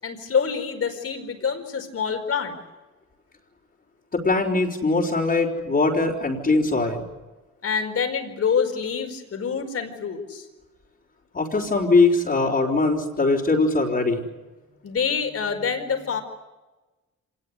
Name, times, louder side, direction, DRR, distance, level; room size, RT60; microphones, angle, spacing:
voice 1, 0.0-2.6 7.6-10.5 14.8-16.2, left 6 dB, 50° left, 5 dB, 4.9 m, -26 dB
voice 2, 4.1-7.0 11.3-14.2, left 3 dB, 30° left, -7 dB, 4.4 m, -21 dB
26.0 x 19.5 x 9.8 m, 1.2 s
cardioid pair, 90°, 30 cm